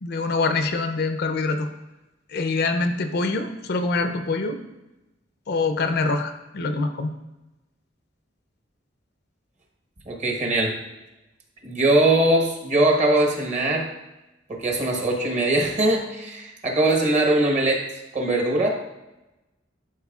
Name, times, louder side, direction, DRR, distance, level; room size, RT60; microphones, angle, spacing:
voice 1, 0.0-1.7 2.3-4.6 5.5-7.2, left 3 dB, 55° left, 7 dB, 0.5 m, -25 dB
voice 2, 10.1-10.8 11.6-13.9 14.5-17.8 18.1-18.7, right 1 dB, 40° right, 0 dB, 1.1 m, -21 dB
11.0 x 4.3 x 2.4 m, 1.0 s
head